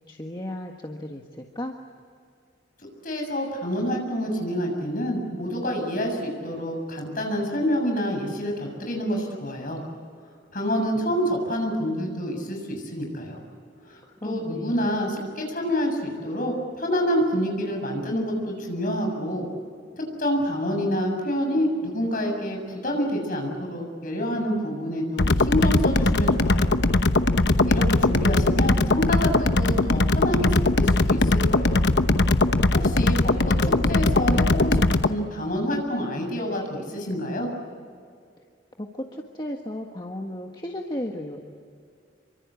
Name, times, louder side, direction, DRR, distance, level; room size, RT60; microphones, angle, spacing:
voice 1, 0.1-1.8 14.1-14.9 32.7-32.9 33.3-33.4 38.8-41.4, left 1 dB, 25° left, 2 dB, 1.6 m, -35 dB
voice 2, 3.0-9.8 10.5-13.4 13.8-19.5 20.0-26.8 27.7-31.9 32.8-37.5, equal, 45° left, 2 dB, 7.3 m, -27 dB
sound 1, 25.2-35.1, left 2 dB, 65° left, 1.0 m, -20 dB
sound 2, 25.6-26.7 27.6-28.7 29.6-30.7, right 1 dB, 55° right, 1.1 m, -36 dB
28.0 x 25.0 x 8.4 m, 2.3 s
head